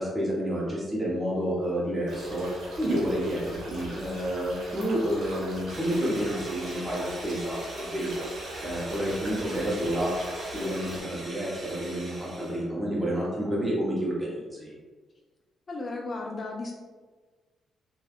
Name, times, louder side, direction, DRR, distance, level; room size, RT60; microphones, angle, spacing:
voice 1, 0.0-8.2 8.6-10.1 10.4-14.7, equal, 15° right, -5 dB, 0.9 m, -29 dB
sound 1, 2.1-11.0, right 1 dB, 75° right, 1.0 m, -41 dB
sound 2, 5.7-12.6, right 1 dB, 55° right, 1.0 m, -43 dB
voice 2, 15.7-16.7, left 3 dB, 40° left, 0 dB, 0.4 m, -34 dB
3.1 x 2.4 x 2.4 m, 1.4 s
cardioid pair, 70°, 0 cm